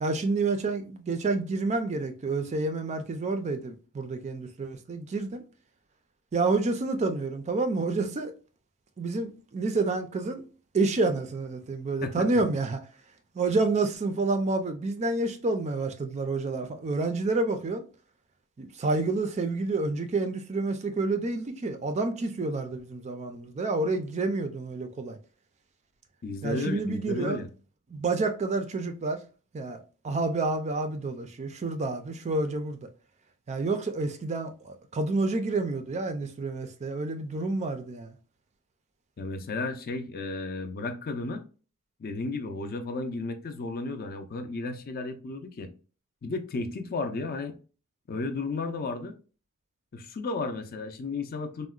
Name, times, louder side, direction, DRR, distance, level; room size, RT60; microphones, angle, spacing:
voice 1, 0.0-5.4 6.3-8.3 9.0-10.4 10.7-12.8 13.3-17.8 18.6-25.2 26.4-27.4 27.9-29.2 29.5-32.8 33.5-38.1, right 3 dB, 30° right, 0.3 m, -29 dB
voice 2, 26.2-27.5 39.2-41.4 42.0-45.7 46.2-47.6 48.1-49.1 49.9-51.7, left 3 dB, 40° left, 0.4 m, -33 dB
3.6 x 2.1 x 2.3 m
head